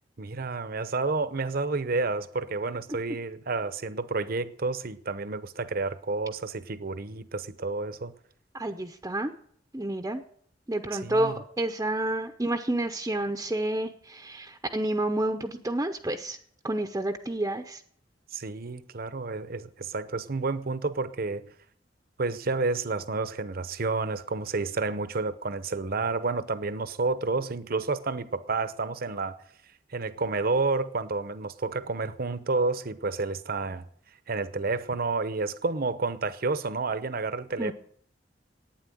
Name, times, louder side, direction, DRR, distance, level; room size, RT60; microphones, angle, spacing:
voice 1, 0.2-8.1 10.9-11.4 18.3-21.4 22.2-29.4 29.9-33.8 34.3-37.7, right 3 dB, 55° right, 0.9 m, -30 dB
voice 2, 8.5-9.3 9.7-10.2 10.7-16.4 16.6-17.8 37.6-37.7, right 1 dB, 15° right, 0.7 m, -29 dB
11.5 x 9.3 x 9.2 m
head